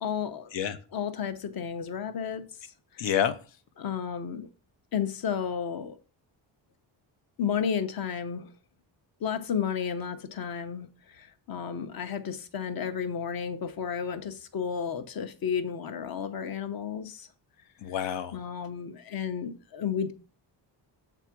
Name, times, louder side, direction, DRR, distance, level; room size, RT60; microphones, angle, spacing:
voice 1, 0.0-0.5 0.9-2.5 2.9-3.1 3.8-4.5 4.9-6.0 7.4-8.5 9.2-17.3 18.3-20.1, left 7 dB, 55° left, 0.9 m, -32 dB
voice 2, 3.0-3.3 17.8-18.3, left 9 dB, 85° left, 0.9 m, -28 dB
8.0 x 3.6 x 5.9 m
cardioid pair, 160°, 44 cm